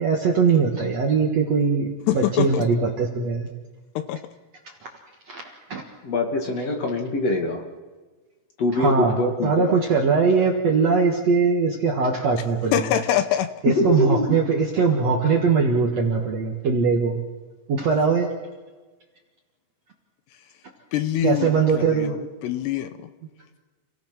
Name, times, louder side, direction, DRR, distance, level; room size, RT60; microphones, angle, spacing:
voice 1, 0.0-3.5 5.3-5.8 8.7-12.8 13.6-17.2 17.7-18.3 21.2-22.1, right 5 dB, 55° right, 1 dB, 2.0 m, -21 dB
voice 2, 2.1-2.6 4.0-4.2 12.7-13.5 20.9-23.1, left 11 dB, 80° left, 11 dB, 2.8 m, -24 dB
voice 3, 6.0-7.6 8.6-9.8 13.7-14.4, left 2 dB, 45° left, 2 dB, 2.6 m, -23 dB
29.0 x 17.5 x 6.1 m, 1.3 s
omnidirectional pair, 5.1 m